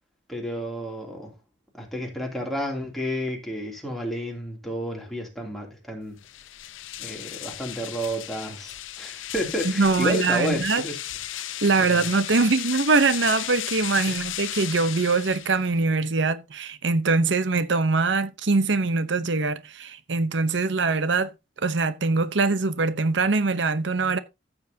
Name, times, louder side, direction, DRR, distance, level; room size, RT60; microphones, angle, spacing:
voice 1, 0.3-1.3 1.8-6.1 7.0-11.0 11.9-12.1 14.1-14.2, equal, ahead, 2.8 m, -31 dB
sound 1, 6.2-15.8, left 13 dB, 90° left, 0.6 m, -35 dB
voice 2, 9.8-10.8 11.6-21.3 21.6-24.2, right 3 dB, 65° right, 0.8 m, -23 dB
14.5 x 7.3 x 2.8 m
head